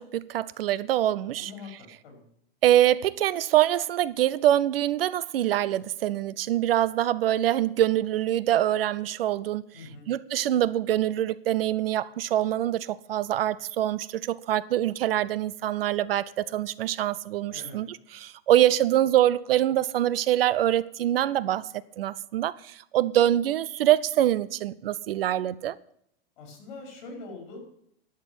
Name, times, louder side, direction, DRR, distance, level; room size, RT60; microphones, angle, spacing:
voice 1, 0.0-1.5 2.6-9.7 10.1-21.7 22.0-25.8, right 12 dB, 70° right, 0.6 m, -24 dB
voice 2, 1.4-2.3 9.7-10.1 17.5-17.8 26.4-27.6, left 3 dB, 50° left, 5.4 m, -43 dB
11.5 x 6.7 x 9.1 m
supercardioid pair, 165°, 30 cm